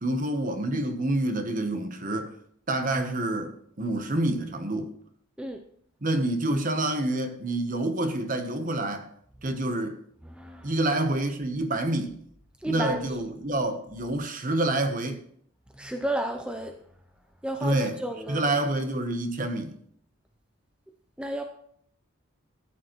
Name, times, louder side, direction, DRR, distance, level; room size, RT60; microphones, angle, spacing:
voice 1, 0.0-2.3 2.7-4.9 6.0-9.1 9.4-10.0 10.6-12.2 12.7-15.2 17.6-18.0 18.3-19.8, right 1 dB, 40° right, 1.0 m, -27 dB
voice 2, 10.4-10.7 12.6-13.0 15.8-16.7 17.4-18.5 21.2-21.4, right 1 dB, 5° right, 0.5 m, -32 dB
13.5 x 9.1 x 3.1 m
head